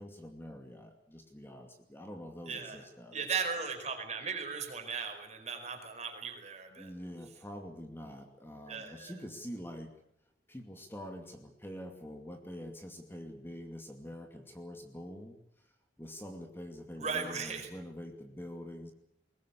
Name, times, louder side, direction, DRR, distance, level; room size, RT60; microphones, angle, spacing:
voice 1, 0.0-3.3 6.8-9.9 10.5-15.4 16.0-18.9, equal, 15° left, 4 dB, 2.5 m, -45 dB
voice 2, 2.5-2.8 3.1-6.9 8.7-9.1 17.0-17.7, right 5 dB, 40° right, 5 dB, 4.7 m, -37 dB
22.5 x 19.5 x 8.5 m, 0.73 s
head